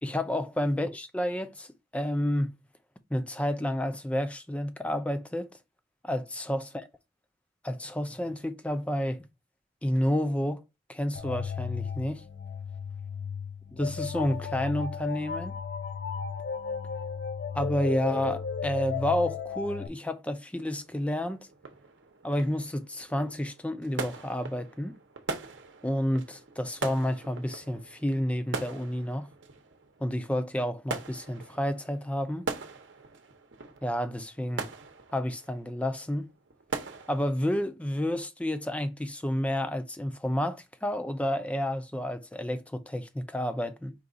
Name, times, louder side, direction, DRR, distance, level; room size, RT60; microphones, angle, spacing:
voice 1, 0.0-1.7 1.9-2.5 3.1-5.5 6.0-6.6 7.6-9.2 9.8-10.6 10.9-12.2 13.7-15.5 17.5-21.4 22.2-25.0 25.8-29.3 30.0-32.5 33.8-34.7 35.1-36.3 37.1-43.9, left 1 dB, 5° left, 0.4 m, -30 dB
sound 1, 11.2-19.9, left 6 dB, 60° left, 0.5 m, -34 dB
sound 2, 20.6-37.3, right 3 dB, 70° right, 0.8 m, -41 dB
4.7 x 2.4 x 3.8 m
head